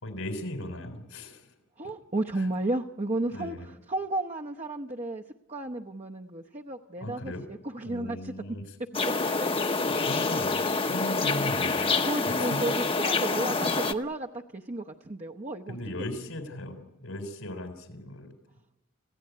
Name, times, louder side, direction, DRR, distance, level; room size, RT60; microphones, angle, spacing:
voice 1, 0.0-1.5 2.4-2.5 3.3-3.7 7.0-7.4 7.8-8.8 9.9-12.6 15.7-18.3, left 1 dB, 85° left, 7 dB, 4.0 m, -38 dB
voice 2, 1.8-3.5 3.9-5.2 5.5-7.3 7.7-8.3 10.2-10.3 12.1-15.8, right 2 dB, 35° right, 2 dB, 0.9 m, -32 dB
sound 1, 8.9-13.9, left 4 dB, 25° left, 0.9 m, -27 dB
28.0 x 16.0 x 9.4 m, 1.0 s
head